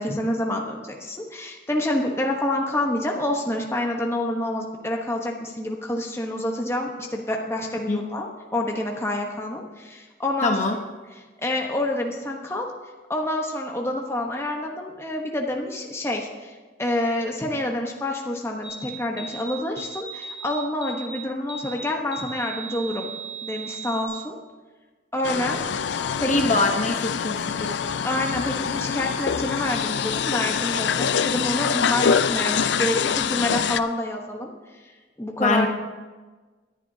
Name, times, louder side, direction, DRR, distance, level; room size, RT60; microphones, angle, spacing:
voice 1, 0.0-10.6 11.1-12.7 13.1-23.1 23.4-24.4 25.1-25.6 26.2-26.5 28.0-34.5 35.2-35.7, left 1 dB, 15° left, 1 dB, 1.0 m, -28 dB
voice 2, 10.4-10.8 26.3-27.7 35.4-35.7, left 3 dB, 40° left, 2 dB, 1.0 m, -23 dB
sound 1, 18.6-18.8 19.2-19.5 19.8-20.5 20.8-21.1 21.5-21.8 22.1-24.1, right 5 dB, 65° right, 2.9 m, -37 dB
sound 2, 25.2-33.8, left 7 dB, 65° left, 0.4 m, -25 dB
18.5 x 11.0 x 2.8 m, 1.3 s
head